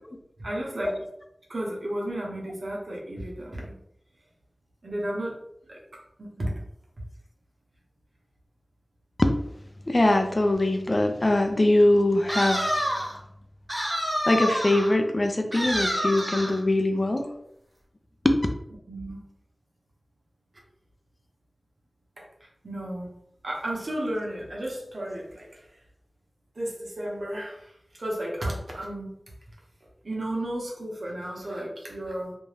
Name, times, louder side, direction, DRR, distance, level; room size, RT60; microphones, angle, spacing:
voice 1, 0.4-1.0 1.5-3.7 4.8-5.4 5.7-5.8 6.2-6.6 18.9-19.2 22.2-23.1 23.4-25.7 26.5-29.1 30.0-32.3, right 1 dB, 70° right, -2 dB, 0.8 m, -33 dB
voice 2, 9.9-13.0 14.3-17.3 18.2-18.4, left 1 dB, 40° left, 5 dB, 0.4 m, -22 dB
sound 1, 12.3-13.2 13.7-14.9 15.5-16.6, equal, 25° right, 0.9 m, -28 dB
2.5 x 2.2 x 3.2 m, 0.77 s
wide cardioid pair, 45°, 0 cm